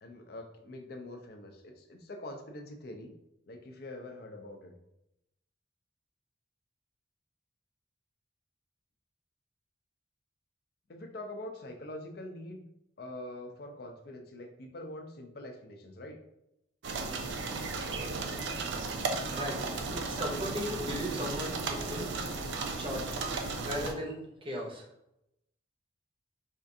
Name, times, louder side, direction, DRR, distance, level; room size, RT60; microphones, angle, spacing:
voice 1, 0.0-3.1 3.5-4.7 10.9-12.6 13.0-16.2, left 1 dB, 50° left, 4 dB, 0.4 m, -44 dB
sound 1, 16.8-23.9, right 3 dB, 70° right, 0.4 m, -35 dB
voice 2, 19.0-22.3 22.8-23.2 23.6-24.9, equal, 25° right, -1 dB, 0.6 m, -37 dB
4.2 x 2.5 x 2.6 m, 0.84 s
head